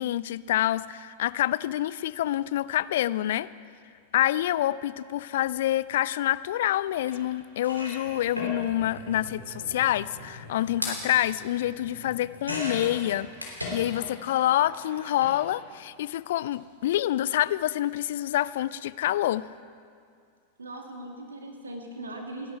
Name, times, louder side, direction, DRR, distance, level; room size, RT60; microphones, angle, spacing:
voice 1, 0.0-3.5 4.1-13.3 13.7-19.5, left 13 dB, 55° left, 18 dB, 0.4 m, -27 dB
sound 1, 7.1-7.2 7.5-14.3 14.5-15.4 16.4-16.5 16.8-16.9, left 1 dB, 90° right, 3.3 m, -38 dB
voice 2, 20.6-22.6, right 1 dB, 75° right, 3 dB, 2.3 m, -39 dB
29.0 x 11.0 x 4.6 m, 2.3 s
figure-of-eight pair, 90°, 0 cm